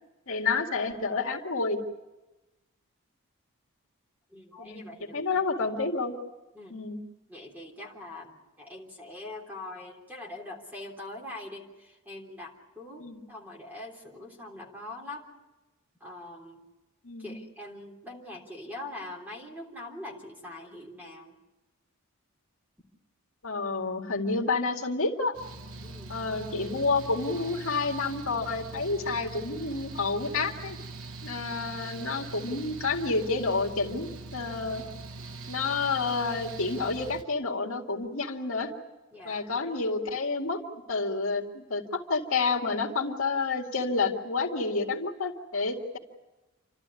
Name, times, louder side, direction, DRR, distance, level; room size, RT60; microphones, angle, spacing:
voice 1, 0.3-1.8 4.6-4.8 5.1-6.1 6.7-7.0 13.0-13.2 17.0-17.4 23.4-25.4 26.1-30.8 31.2-34.8 35.5-38.7 39.2-40.6 40.9-46.0, left 3 dB, 70° left, 1 dB, 2.1 m, -29 dB
voice 2, 4.3-5.4 6.5-6.8 7.3-15.2 16.0-16.6 17.2-21.4 25.8-26.2 39.1-39.4, left 2 dB, 10° right, 0 dB, 3.4 m, -43 dB
Mechanical fan, 25.3-37.2, right 3 dB, 70° right, 1.1 m, -42 dB
29.0 x 13.0 x 9.7 m, 1.1 s
head